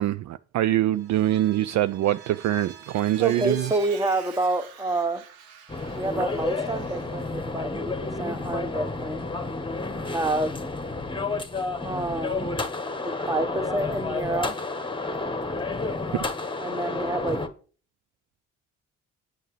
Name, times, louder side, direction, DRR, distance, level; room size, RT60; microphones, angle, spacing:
voice 1, 0.0-3.7, right 13 dB, 50° right, 0.4 m, -24 dB
Vehicle, 0.9-7.3, right 7 dB, 75° right, 1.1 m, -46 dB
voice 2, 3.2-5.2 5.9-9.2 10.0-10.6 11.8-12.5 13.0-14.5 16.6-17.5, right 2 dB, 10° right, 1.1 m, -28 dB
sound 1, 5.7-17.5, left 3 dB, 15° left, 1.2 m, -31 dB
8.6 x 8.1 x 3.2 m
hypercardioid pair, 45°, 36 cm